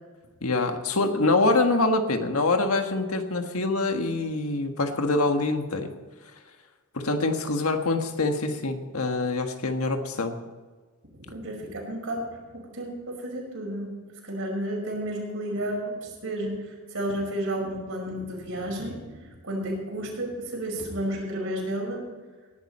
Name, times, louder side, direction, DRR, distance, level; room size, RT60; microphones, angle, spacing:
voice 1, 0.4-5.9 6.9-10.4, left 2 dB, 80° left, 5 dB, 1.6 m, -25 dB
voice 2, 11.3-12.2 12.5-13.9 14.2-19.1 19.4-22.0, right 1 dB, 65° right, -1 dB, 5.6 m, -32 dB
19.0 x 11.5 x 4.3 m, 1.4 s
head